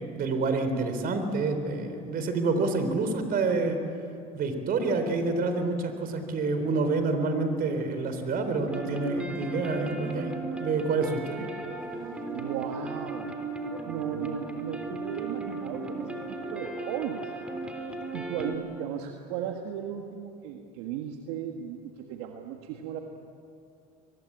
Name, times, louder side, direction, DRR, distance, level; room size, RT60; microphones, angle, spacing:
voice 1, 0.0-3.8 4.3-11.5, right 3 dB, 50° right, 8 dB, 3.9 m, -28 dB
sound 1, 8.6-18.6, right 3 dB, 5° right, 3.7 m, -36 dB
voice 2, 12.3-13.3 13.6-17.3 18.1-23.0, right 8 dB, 80° right, 3 dB, 1.6 m, -36 dB
24.0 x 20.5 x 8.7 m, 2.6 s
supercardioid pair, 80°, 19 cm